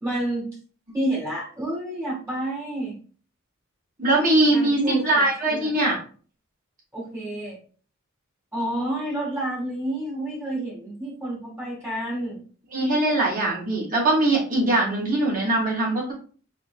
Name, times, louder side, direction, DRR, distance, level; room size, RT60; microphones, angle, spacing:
voice 1, 0.0-0.5 0.9-2.9 4.5-5.7 6.9-7.6 8.5-12.4, right 1 dB, 10° right, -5 dB, 1.6 m, -29 dB
voice 2, 4.0-6.0 12.7-16.1, right 2 dB, 40° right, -4 dB, 2.3 m, -21 dB
4.4 x 4.3 x 2.2 m, 0.41 s
head